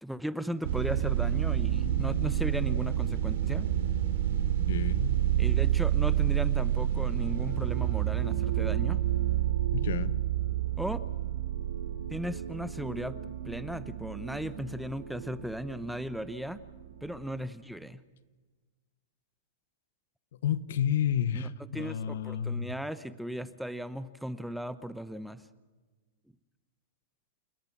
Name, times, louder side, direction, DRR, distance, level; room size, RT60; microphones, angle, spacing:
voice 1, 0.0-3.7 5.4-9.0 10.8-11.0 12.1-13.2 13.4-16.6 17.0-18.0 21.3-25.4, equal, ahead, 14 dB, 0.9 m, -36 dB
sound 1, 0.6-17.4, right 12 dB, 65° right, 3.0 m, -29 dB
voice 2, 4.7-5.2 9.7-10.2 20.4-22.7, left 9 dB, 75° left, 17 dB, 1.1 m, -30 dB
29.0 x 11.0 x 9.9 m, 1.3 s
hypercardioid pair, 140°, 0 cm